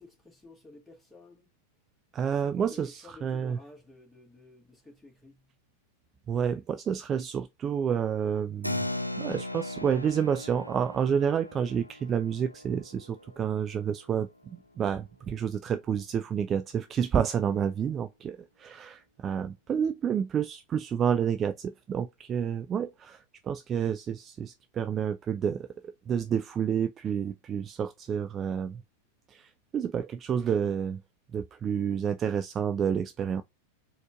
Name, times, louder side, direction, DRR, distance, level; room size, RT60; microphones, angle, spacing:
voice 1, 0.0-1.5 2.3-5.6, left 2 dB, 5° left, 2.0 m, -52 dB
voice 2, 2.1-2.9 3.2-3.6 6.3-8.9 9.2-23.2 23.4-25.7 26.1-28.8 29.3-31.0 31.3-33.4, right 8 dB, 25° right, 0.3 m, -29 dB
Keyboard (musical), 8.6-14.7, left 1 dB, 90° left, 0.3 m, -38 dB
4.2 x 2.9 x 2.3 m
figure-of-eight pair, 90°, 0 cm